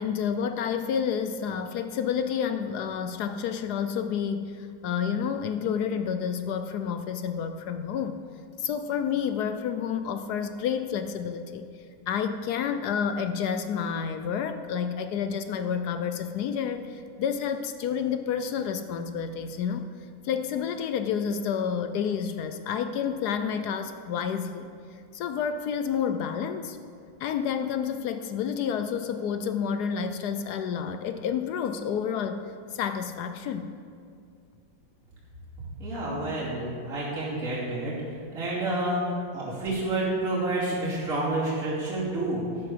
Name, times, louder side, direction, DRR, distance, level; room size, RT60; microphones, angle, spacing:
voice 1, 0.0-8.2 8.6-11.7 12.1-19.9 20.2-24.7 25.1-26.8 27.2-32.4 32.7-33.7, left 7 dB, 70° left, 9 dB, 1.0 m, -29 dB
voice 2, 35.8-37.9 38.3-42.4, right 2 dB, 45° right, -8 dB, 3.2 m, -29 dB
12.5 x 9.6 x 5.0 m, 2.3 s
omnidirectional pair, 2.1 m